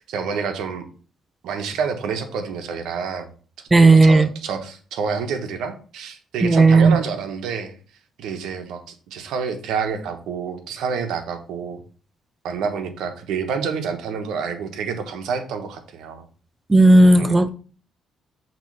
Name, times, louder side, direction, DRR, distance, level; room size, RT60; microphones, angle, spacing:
voice 1, 0.1-0.8 1.4-3.3 3.9-7.7 8.2-11.8 12.4-16.3 17.2-17.5, right 6 dB, 85° right, 1.1 m, -28 dB
voice 2, 3.7-4.3 6.4-7.0 16.7-17.5, right 2 dB, 20° right, 0.6 m, -12 dB
6.0 x 3.1 x 5.4 m
cardioid pair, 90°, 0 cm